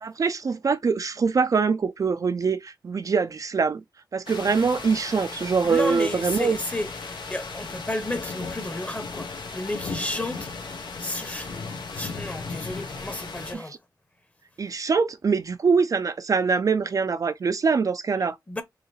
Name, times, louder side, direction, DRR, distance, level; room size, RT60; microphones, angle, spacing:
voice 1, 0.0-3.8 4.1-6.6 13.5-13.8 14.6-18.4, right 5 dB, 50° right, 0.4 m, -24 dB
sound 1, 4.3-13.5, left 4 dB, 90° left, 1.1 m, -36 dB
voice 2, 5.6-11.5 11.9-13.7 18.5-18.6, left 1 dB, 20° left, 0.9 m, -32 dB
4.7 x 2.9 x 3.1 m
wide cardioid pair, 135°, 7 cm